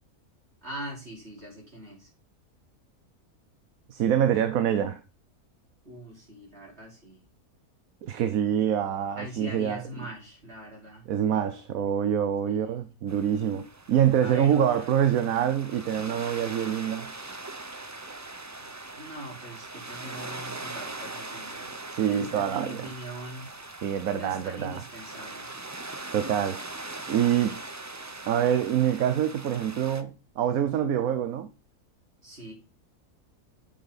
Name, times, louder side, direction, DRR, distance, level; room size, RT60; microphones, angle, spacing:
voice 1, 0.6-2.1 5.8-7.2 9.2-11.1 12.4-12.8 14.2-14.9 18.6-18.7 18.9-21.7 22.1-23.5 24.0-25.5 32.2-32.5, right 1 dB, 45° right, 4.9 m, -42 dB
voice 2, 3.9-5.0 8.0-9.8 11.1-17.1 21.9-22.9 23.8-24.8 26.1-26.6 27.1-27.6 28.3-31.5, right 9 dB, 70° right, 1.2 m, -25 dB
sound 1, 13.1-30.0, right 2 dB, 25° right, 0.3 m, -41 dB
8.3 x 7.0 x 4.1 m
omnidirectional pair, 1.6 m